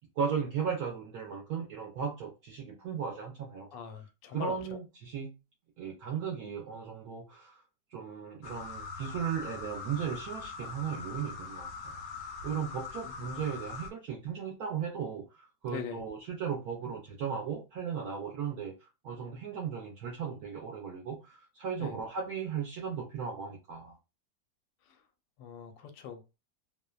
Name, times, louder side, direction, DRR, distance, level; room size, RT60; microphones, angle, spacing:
voice 1, 0.2-3.7 4.3-5.3 5.8-7.6 7.9-11.7 12.4-23.9, right 7 dB, 70° right, 0.9 m, -36 dB
voice 2, 3.7-4.5 13.0-13.4 15.7-16.0 21.8-21.9 25.4-26.3, left 7 dB, 85° left, 1.3 m, -42 dB
sound 1, 8.4-13.9, left 5 dB, 70° left, 0.9 m, -42 dB
3.0 x 2.0 x 2.2 m
omnidirectional pair, 1.9 m